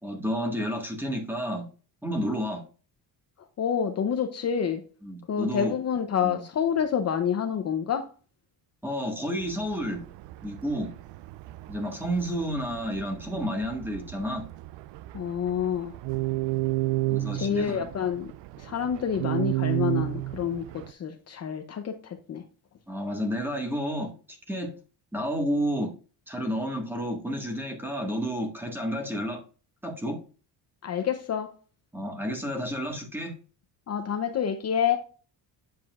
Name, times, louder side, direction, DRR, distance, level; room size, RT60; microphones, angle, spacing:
voice 1, 0.0-1.7 2.0-2.6 5.0-5.7 6.2-6.4 8.8-10.0 10.4-10.9 11.7-14.4 17.1-17.8 22.9-24.7 25.1-25.9 26.3-29.4 29.8-30.2 31.9-33.3, equal, 5° right, 1.6 m, -31 dB
voice 2, 3.6-4.8 5.3-8.1 15.1-15.9 17.3-18.3 18.6-22.4 30.8-31.5 33.9-35.0, left 8 dB, 40° left, 0.7 m, -28 dB
sound 1, 9.4-20.9, right 17 dB, 85° right, 0.5 m, -33 dB
8.5 x 7.5 x 2.4 m
cardioid pair, 160°, 42 cm